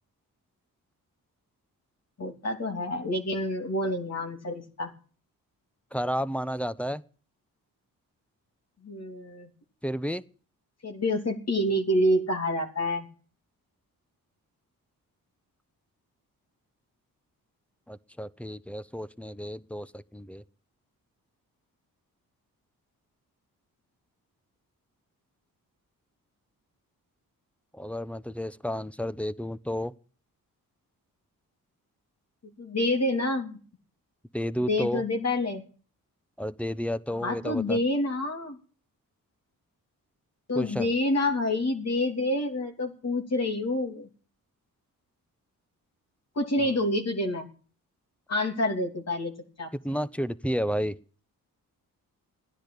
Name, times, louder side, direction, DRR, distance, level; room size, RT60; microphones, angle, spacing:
voice 1, 2.2-4.9 8.8-9.5 10.8-13.1 32.6-33.6 34.7-35.6 37.2-38.6 40.5-44.1 46.4-47.5 48.3-49.3 49.6-49.7, left 1 dB, 45° left, 3 dB, 3.0 m, -27 dB
voice 2, 5.9-7.0 9.8-10.2 17.9-20.4 27.7-29.9 34.3-35.0 36.4-37.8 40.5-40.9 46.6-46.7 49.8-50.9, equal, 5° left, 16 dB, 0.8 m, -31 dB
14.5 x 10.0 x 8.5 m, 0.41 s
cardioid pair, 65°, 36 cm